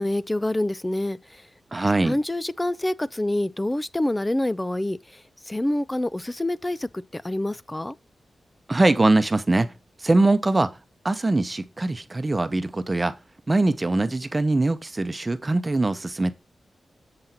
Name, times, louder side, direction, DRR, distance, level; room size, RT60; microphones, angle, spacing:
voice 1, 0.0-1.5 2.0-8.0, left 1 dB, 15° left, 0.5 m, -27 dB
voice 2, 1.7-2.2 8.7-9.7 10.0-10.7 11.0-13.1 13.5-16.3, right 2 dB, 25° right, 0.9 m, -22 dB
7.9 x 5.6 x 4.5 m
wide cardioid pair, 85°, 0 cm